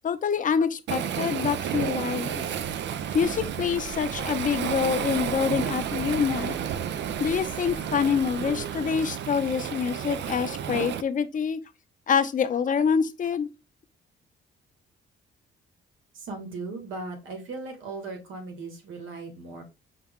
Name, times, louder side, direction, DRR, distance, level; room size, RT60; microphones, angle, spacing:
voice 1, 0.0-2.5 3.1-6.5 7.2-11.6 12.1-13.5, left 7 dB, 40° left, 0.6 m, -26 dB
Waves surf, 0.9-11.0, right 9 dB, 65° right, 0.5 m, -31 dB
sound 1, 3.0-8.7, right 4 dB, 45° right, 0.9 m, -43 dB
voice 2, 16.1-19.6, right 3 dB, 85° right, 1.6 m, -37 dB
5.6 x 2.2 x 3.6 m
cardioid pair, 90°, 20 cm